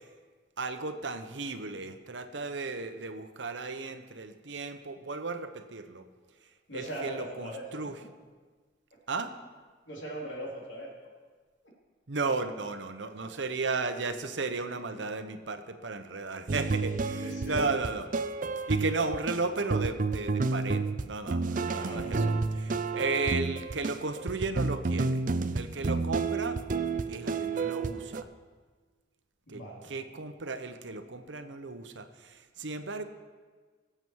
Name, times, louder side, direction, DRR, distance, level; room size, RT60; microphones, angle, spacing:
voice 1, 0.6-6.0 6.7-8.0 9.1-9.3 12.1-18.1 18.7-25.2 25.5-26.6 27.1-28.3 29.5-33.0, right 3 dB, 75° right, 8 dB, 0.9 m, -34 dB
voice 2, 6.7-7.7 9.9-10.9 17.2-17.6 21.7-22.3 29.5-29.9, right 1 dB, 80° left, -2 dB, 3.4 m, -40 dB
sound 1, 16.5-28.2, right 3 dB, 45° right, 0.5 m, -30 dB
20.5 x 8.0 x 4.7 m, 1.5 s
head